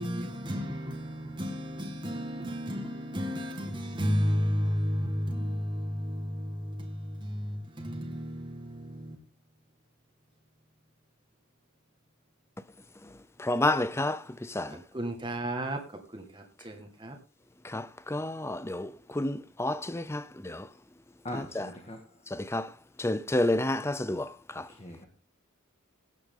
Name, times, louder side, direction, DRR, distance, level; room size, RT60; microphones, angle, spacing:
voice 1, 0.0-9.2 14.9-15.8 16.1-17.2, equal, 20° right, 1.9 m, -32 dB
voice 2, 13.5-14.2 14.6-14.7 17.7-17.8 18.1-18.9 19.2-20.6 21.6-21.7 22.5-22.6 23.0-24.2, left 1 dB, 10° left, 0.6 m, -29 dB
voice 3, 21.2-22.0 24.7-25.1, left 1 dB, 30° left, 1.8 m, -40 dB
17.0 x 8.1 x 3.8 m
head